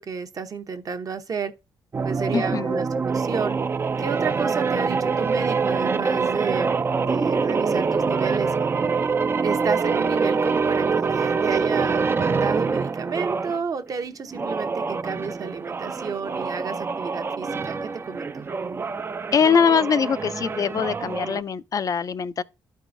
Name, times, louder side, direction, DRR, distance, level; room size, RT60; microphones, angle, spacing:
voice 1, 0.0-1.5 2.0-3.6 4.0-8.5 9.4-18.5, right 5 dB, 45° right, 0.8 m, -31 dB
sound 1, 1.9-13.6 14.3-21.4, right 5 dB, 30° right, 0.4 m, -25 dB
voice 2, 2.3-2.8 19.3-22.4, left 6 dB, 45° left, 0.4 m, -22 dB
12.0 x 4.6 x 2.6 m
cardioid pair, 80°, 9 cm